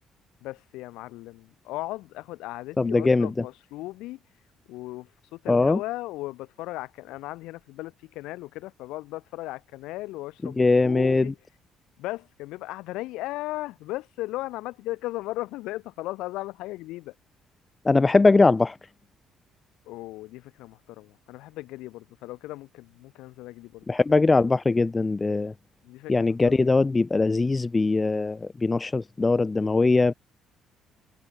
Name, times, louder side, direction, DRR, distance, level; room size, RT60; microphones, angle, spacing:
voice 1, 0.4-4.2 4.7-11.4 12.0-17.1 19.9-23.8 25.8-26.3, left 18 dB, 90° left, 3.7 m, -36 dB
voice 2, 2.8-3.3 5.5-5.8 10.4-11.3 17.8-18.8 23.9-25.5 26.1-30.1, left 3 dB, 20° left, 1.1 m, -21 dB
cardioid pair, 105°, 0 cm